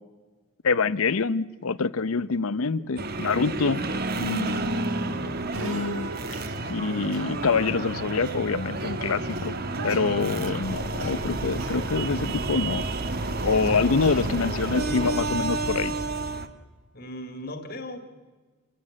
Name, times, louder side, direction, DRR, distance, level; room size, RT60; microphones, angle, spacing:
voice 1, 0.6-3.8 4.2-4.6 5.6-6.1 6.7-9.6 9.8-12.9 13.4-15.9, left 4 dB, 85° left, 17 dB, 0.7 m, -26 dB
sound 1, 3.0-16.5, right 2 dB, 45° right, 1.2 m, -31 dB
sound 2, 4.3-15.4, right 1 dB, 85° right, 1.7 m, -37 dB
voice 2, 13.5-14.1 14.6-15.1 16.9-18.0, left 1 dB, 45° left, 6 dB, 2.0 m, -39 dB
27.5 x 15.5 x 8.6 m, 1.4 s
head